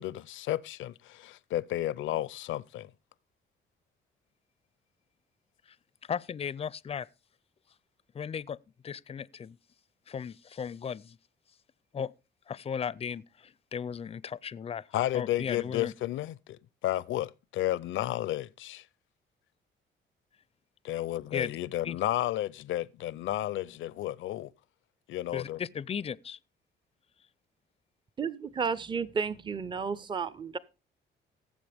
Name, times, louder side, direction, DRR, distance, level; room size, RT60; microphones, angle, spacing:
voice 1, 0.0-2.9 14.9-18.8 20.8-24.5 25.1-25.6, left 14 dB, 75° left, 0.6 m, -32 dB
voice 2, 6.0-7.1 8.1-8.6 8.8-9.6 10.1-11.2 11.9-12.1 12.5-14.9 15.1-15.9 21.3-21.6 21.8-22.0 25.3-26.4, left 7 dB, 30° left, 0.5 m, -36 dB
voice 3, 28.2-30.6, right 5 dB, 25° right, 0.6 m, -32 dB
17.5 x 7.6 x 3.5 m
cardioid pair, 90°, 20 cm